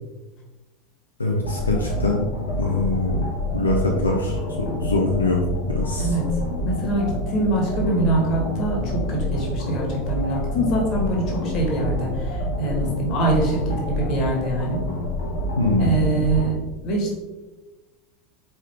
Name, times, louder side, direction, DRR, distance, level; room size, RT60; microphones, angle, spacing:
voice 1, 1.2-2.3 2.6-3.2 3.5-5.4 5.7-6.1 15.6-15.9, left 2 dB, 80° left, -1 dB, 0.5 m, -23 dB
sound 1, 1.4-16.5, left 1 dB, 60° left, 1.1 m, -27 dB
voice 2, 6.6-14.9 15.8-16.6 16.8-17.1, right 2 dB, 40° left, -2 dB, 1.4 m, -24 dB
4.4 x 3.4 x 3.4 m, 1.1 s
figure-of-eight pair, 80°, 0 cm